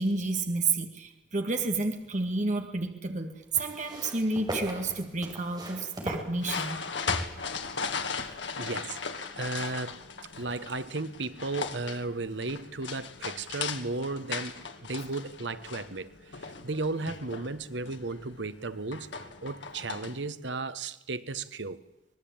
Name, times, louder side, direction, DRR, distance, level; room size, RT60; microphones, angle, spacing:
voice 1, 0.0-6.8, right 3 dB, 45° right, 2.2 m, -30 dB
sound 1, 1.5-2.4 3.5-7.0 7.9-8.0, right 1 dB, 25° right, 5.5 m, -39 dB
sound 2, 6.4-20.3, left 5 dB, 85° left, 2.0 m, -38 dB
voice 2, 8.2-10.0 10.4-19.1 19.4-21.8, right 3 dB, 80° right, 1.2 m, -35 dB
24.5 x 19.5 x 8.8 m
head